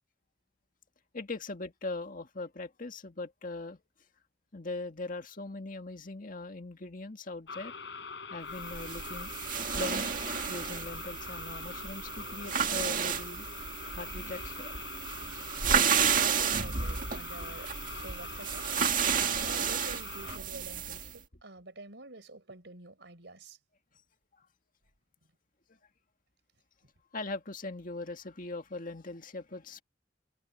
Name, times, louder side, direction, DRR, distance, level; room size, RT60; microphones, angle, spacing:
voice 1, 1.1-3.8 4.5-7.7 8.3-9.3 9.8-10.1 10.5-13.5 13.9-14.7 25.7-25.8 27.1-29.8, left 2 dB, 50° left, 2.0 m, -40 dB
sound 1, 7.5-20.4, left 5 dB, 80° left, 4.5 m, -44 dB
sound 2, 8.6-21.1, right 7 dB, 50° right, 1.9 m, -32 dB
voice 2, 15.9-18.7 19.4-23.6, right 2 dB, 75° right, 4.8 m, -47 dB
head